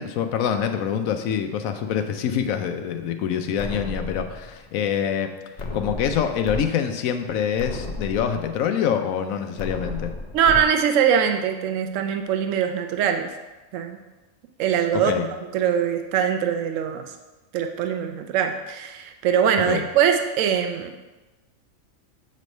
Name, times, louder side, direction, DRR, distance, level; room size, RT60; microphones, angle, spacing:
voice 1, 0.0-5.3 5.7-10.1 14.9-15.3 19.7-19.8, left 8 dB, 85° left, 7 dB, 1.0 m, -25 dB
sound 1, 3.6-4.6 5.6-6.6 7.1-7.2 7.6-8.6 9.6-10.6, left 3 dB, 50° left, 0.5 m, -33 dB
voice 2, 10.3-13.3 13.7-14.0 14.6-15.1 15.5-17.0 17.5-20.9, right 8 dB, 75° right, 6 dB, 0.9 m, -22 dB
7.5 x 3.2 x 5.3 m, 1.1 s
omnidirectional pair, 1.4 m